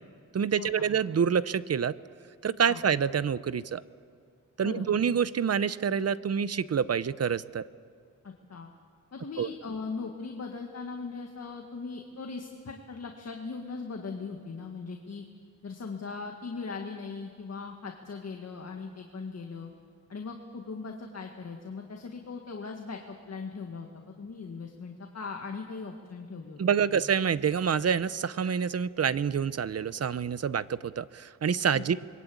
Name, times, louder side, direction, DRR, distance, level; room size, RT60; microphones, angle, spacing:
voice 1, 0.3-1.9 2.4-3.8 4.6-7.6 9.4-9.5 26.6-32.1, right 7 dB, 50° right, 16 dB, 0.7 m, -27 dB
voice 2, 4.6-5.0 8.2-8.7 9.1-15.2 15.6-19.7 20.1-23.9 24.2-27.0 31.7-31.9, left 4 dB, 50° left, 2 dB, 1.9 m, -39 dB
28.0 x 22.5 x 8.7 m, 2.1 s
wide cardioid pair, 140°, 33 cm